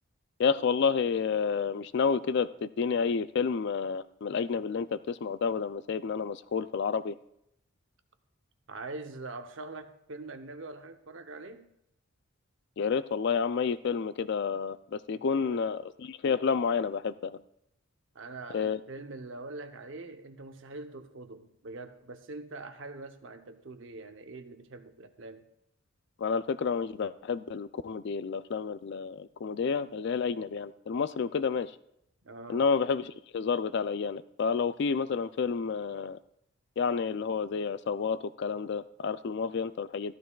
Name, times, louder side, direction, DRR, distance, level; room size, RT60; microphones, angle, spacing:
voice 1, 0.4-7.1 12.8-17.4 18.5-18.8 26.2-31.7 32.5-36.2 36.8-40.2, left 5 dB, 50° left, 0.3 m, -30 dB
voice 2, 8.7-11.7 15.3-15.8 18.1-25.5 32.2-32.7, right 2 dB, 60° right, 0.7 m, -43 dB
14.0 x 12.5 x 2.3 m
head